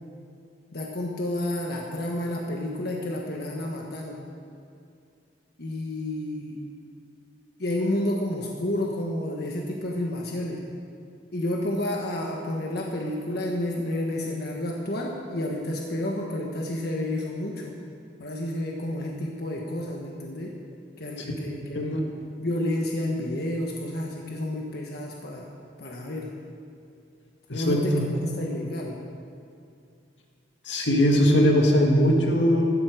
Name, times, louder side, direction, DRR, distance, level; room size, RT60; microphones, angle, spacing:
voice 1, 0.7-4.2 5.6-6.6 7.6-10.6 11.3-17.8 18.2-20.5 21.0-22.0 22.4-25.5 25.8-26.3 27.5-29.0, left 1 dB, 60° left, -1 dB, 1.4 m, -30 dB
voice 2, 27.5-28.0 30.7-32.6, equal, 80° left, 1 dB, 2.0 m, -21 dB
16.0 x 13.0 x 5.1 m, 2.5 s
head